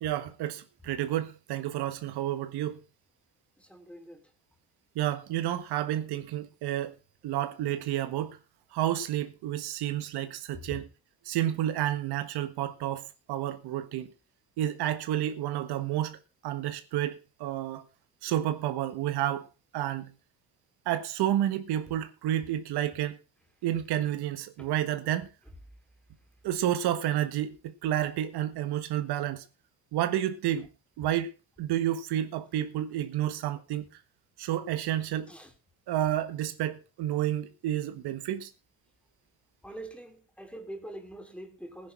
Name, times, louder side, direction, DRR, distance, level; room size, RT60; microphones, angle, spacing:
voice 1, 0.0-2.8 4.9-6.9 7.2-8.4 8.7-10.8 11.2-14.1 14.6-16.2 16.4-17.8 18.2-19.5 19.7-20.1 20.8-23.2 23.6-25.3 26.4-29.4 29.9-30.7 31.0-31.3 31.6-33.9 34.4-35.3 35.9-38.5, right 12 dB, 85° right, 1.6 m, -30 dB
voice 2, 3.6-4.2 10.7-10.8 24.6-24.7 35.3-35.5 39.6-41.9, right 1 dB, 5° left, 3.2 m, -44 dB
15.5 x 10.5 x 4.5 m
cardioid pair, 110°, 38 cm